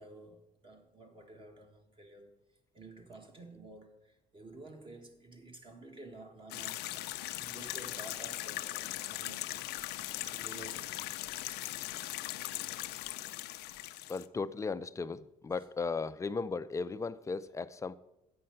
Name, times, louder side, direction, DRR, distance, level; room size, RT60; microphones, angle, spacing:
voice 1, 0.0-2.4 2.7-6.8 7.4-9.4 10.2-11.0 11.9-12.1, right 2 dB, 30° right, 1.5 m, -51 dB
sound 1, 6.5-14.3, left 16 dB, 85° left, 0.5 m, -39 dB
voice 2, 14.1-17.9, left 4 dB, 20° left, 0.4 m, -36 dB
8.6 x 5.6 x 7.6 m
cardioid pair, 110°, 17 cm